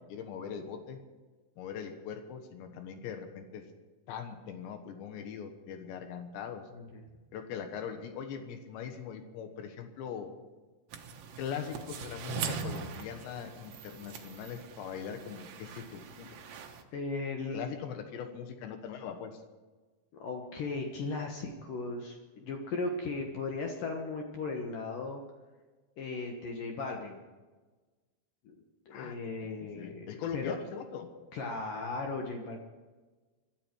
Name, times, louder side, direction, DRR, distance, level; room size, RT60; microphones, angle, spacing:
voice 1, 0.1-1.0 1.6-3.6 4.1-6.7 7.3-10.3 11.4-16.4 17.5-19.4 28.9-29.2 29.8-31.1, left 7 dB, 85° left, 6 dB, 3.6 m, -41 dB
sound 1, 10.9-16.8, right 6 dB, 75° right, 1.5 m, -41 dB
voice 2, 16.9-17.7 20.1-25.2 26.0-27.2 28.9-30.6 31.3-32.6, left 3 dB, 60° left, 2 dB, 2.6 m, -37 dB
24.0 x 13.0 x 4.7 m, 1.3 s
omnidirectional pair, 5.0 m